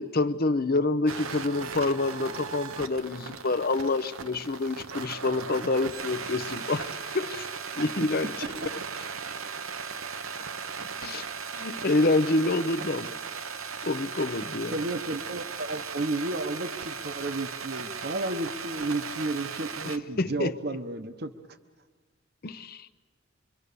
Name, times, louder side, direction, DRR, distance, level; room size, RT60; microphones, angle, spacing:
voice 1, 0.0-7.5 7.8-8.3 11.0-11.3 11.5-13.1 13.8-14.8 19.8-20.5 22.4-22.9, left 2 dB, 45° left, 11 dB, 0.8 m, -27 dB
sound 1, 1.1-20.0, right 6 dB, 90° right, 1.0 m, -37 dB
voice 2, 14.7-21.3, right 2 dB, 50° right, 8 dB, 1.0 m, -32 dB
27.0 x 23.5 x 6.8 m, 1.3 s
head